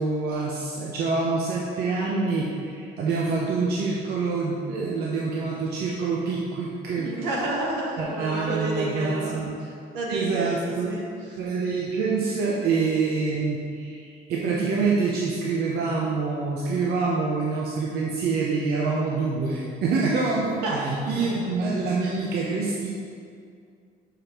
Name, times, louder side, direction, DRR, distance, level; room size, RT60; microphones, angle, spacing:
voice 1, 0.0-7.1 8.0-9.5 10.1-10.9 11.4-22.9, right 4 dB, 70° right, -3 dB, 0.7 m, -26 dB
voice 2, 7.0-11.4 20.6-20.8 21.1-21.5, right 1 dB, 90° right, -3 dB, 1.3 m, -31 dB
6.5 x 4.9 x 3.0 m, 2.3 s
cardioid pair, 110°, 17 cm